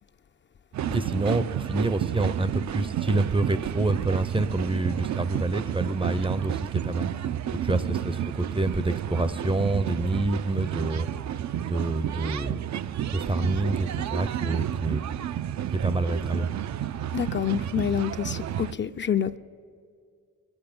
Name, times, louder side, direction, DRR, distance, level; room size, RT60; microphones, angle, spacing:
sound 1, 0.7-18.7, right 10 dB, 65° right, 0.5 m, -31 dB
voice 1, 0.9-7.1 7.6-11.1 11.6-12.6 12.9-15.0 15.8-16.5, right 2 dB, 20° right, 14 dB, 0.5 m, -27 dB
voice 2, 17.1-19.4, left 9 dB, 40° left, 9 dB, 0.4 m, -27 dB
20.0 x 8.0 x 8.6 m, 2.3 s
cardioid pair, 85°, 30 cm